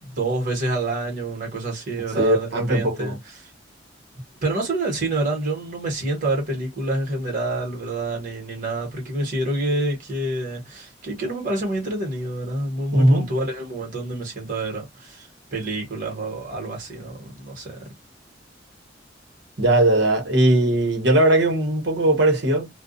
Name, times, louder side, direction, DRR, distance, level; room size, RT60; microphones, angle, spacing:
voice 1, 0.0-3.5 4.4-17.9, right 2 dB, 45° right, 1.2 m, -27 dB
voice 2, 2.1-3.2 12.9-13.3 19.6-22.7, right 1 dB, 65° right, 1.1 m, -19 dB
2.3 x 2.2 x 2.5 m
head